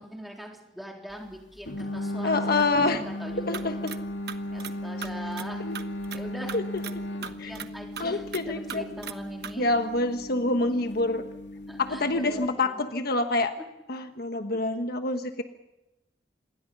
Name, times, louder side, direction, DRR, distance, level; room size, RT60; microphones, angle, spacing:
voice 1, 0.0-3.8 4.5-5.7 6.1-6.6 7.4-9.7 11.7-12.8 13.6-13.7 14.5-14.6, equal, ahead, 0 dB, 3.8 m, -41 dB
sound 1, 1.7-12.5, left 1 dB, 85° left, 2.2 m, -36 dB
voice 2, 2.2-3.0 3.5-3.9 5.6-5.8 6.5-6.8 7.4-7.5 8.0-8.8 9.6-11.2 11.8-13.5 13.9-15.4, left 2 dB, 60° left, 7 dB, 1.4 m, -27 dB
Old Clock Pendulum, 3.5-4.0 4.3-4.7 5.0-6.2 6.5-7.0 7.2-7.7 8.0-8.4 8.7-9.2 9.4-9.5, right 7 dB, 65° right, 1.2 m, -38 dB
27.5 x 21.5 x 5.6 m, 0.93 s
head